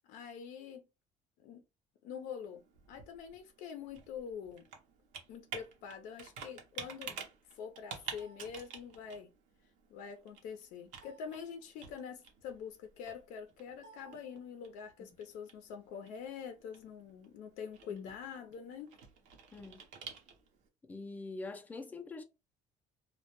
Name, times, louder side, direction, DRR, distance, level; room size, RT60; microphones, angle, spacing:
voice 1, 0.1-0.8 1.4-1.6 2.0-2.6 2.9-4.6 5.3-7.3 7.5-9.3 9.9-18.9, left 7 dB, 85° left, 0.5 m, -45 dB
Computer keyboard, 2.4-20.7, right 6 dB, 75° right, 0.7 m, -51 dB
voice 2, 19.5-19.9 20.8-22.2, left 3 dB, 15° left, 0.3 m, -44 dB
2.1 x 2.1 x 2.8 m
cardioid pair, 140°, 13 cm